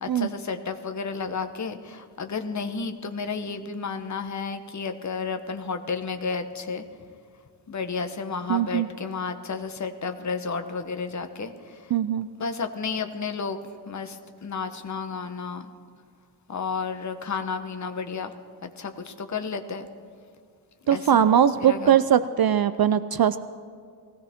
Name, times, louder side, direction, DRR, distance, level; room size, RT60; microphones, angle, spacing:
voice 1, 0.0-6.8 7.7-11.5 12.4-14.2 14.4-15.7 16.5-18.3 18.6-19.9 20.9-21.3 21.6-22.0, left 5 dB, 40° left, 7 dB, 1.0 m, -32 dB
voice 2, 8.5-8.9 11.9-12.3 20.9-23.4, right 9 dB, 60° right, 13 dB, 0.5 m, -20 dB
20.0 x 16.0 x 3.6 m, 2.2 s
wide cardioid pair, 125°, 43 cm